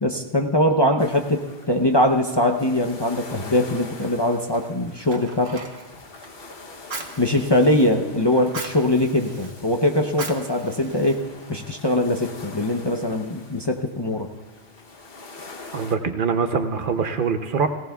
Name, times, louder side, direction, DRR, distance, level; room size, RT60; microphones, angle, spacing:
voice 1, 0.0-1.4 1.7-5.6 7.2-14.3, left 1 dB, 30° left, 1 dB, 0.6 m, -22 dB
sound 1, 1.0-16.0, left 3 dB, 60° left, 1.1 m, -43 dB
Fire, 4.5-11.7, right 3 dB, 75° right, 1.5 m, -40 dB
voice 2, 15.7-17.7, right 5 dB, 55° right, 8 dB, 0.8 m, -23 dB
18.5 x 17.0 x 2.3 m, 1.2 s
omnidirectional pair, 1.1 m